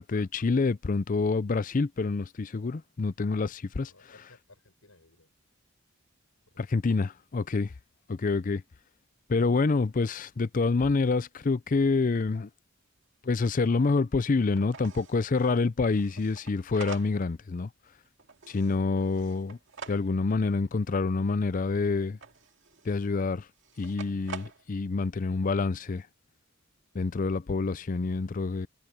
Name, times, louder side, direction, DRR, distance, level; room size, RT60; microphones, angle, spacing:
voice 1, 0.0-3.9 6.6-7.7 8.1-8.6 9.3-12.5 13.2-17.7 18.5-19.6 19.9-22.2 22.9-23.4 23.8-26.0 26.9-28.7, left 3 dB, 40° left, 0.5 m, -27 dB
voice 2, 3.7-5.3 6.5-6.8 27.4-28.0, left 2 dB, 75° left, 6.6 m, -60 dB
sound 1, 13.0-13.1 13.3-13.4 14.0-14.1 14.5-17.5 17.8-20.4 22.0-23.1 23.6-24.7, right 5 dB, 60° right, 2.2 m, -46 dB
head